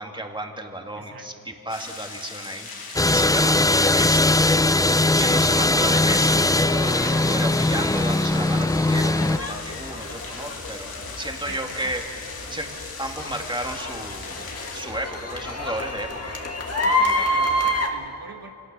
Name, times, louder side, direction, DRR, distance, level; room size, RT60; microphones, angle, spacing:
voice 1, 0.0-4.9 5.2-12.0 12.5-12.7 13.0-16.4, right 1 dB, 15° right, 3 dB, 2.4 m, -33 dB
voice 2, 0.9-1.5 11.4-12.0 12.5-12.6 16.8-18.5, right 4 dB, 75° right, 4 dB, 1.5 m, -43 dB
sound 1, 1.7-14.8, left 4 dB, 85° left, 2.3 m, -39 dB
sound 2, 3.0-9.4, left 2 dB, 10° left, 0.5 m, -20 dB
sound 3, 4.5-17.9, left 1 dB, 45° left, 2.3 m, -30 dB
25.0 x 18.5 x 7.0 m, 2.7 s
cardioid pair, 55°, 36 cm